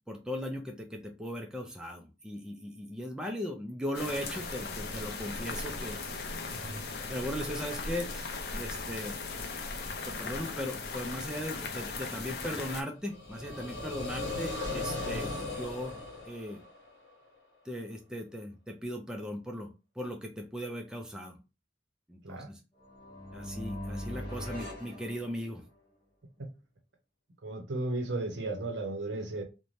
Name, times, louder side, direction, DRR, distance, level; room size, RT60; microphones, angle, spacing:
voice 1, 0.1-6.0 7.1-9.4 10.0-16.0 16.3-16.6 17.6-19.7 20.0-21.4 22.1-22.6 23.3-25.7, equal, 5° right, 0.3 m, -38 dB
sound 1, 3.9-12.8, left 4 dB, 55° left, 0.5 m, -38 dB
voice 2, 6.5-6.9 22.2-22.5 27.4-29.4, right 2 dB, 80° right, 0.7 m, -35 dB
sound 2, 13.0-17.1, left 2 dB, 85° left, 0.9 m, -37 dB
sound 3, 22.8-25.8, left 1 dB, 25° left, 0.9 m, -41 dB
2.6 x 2.1 x 3.0 m
head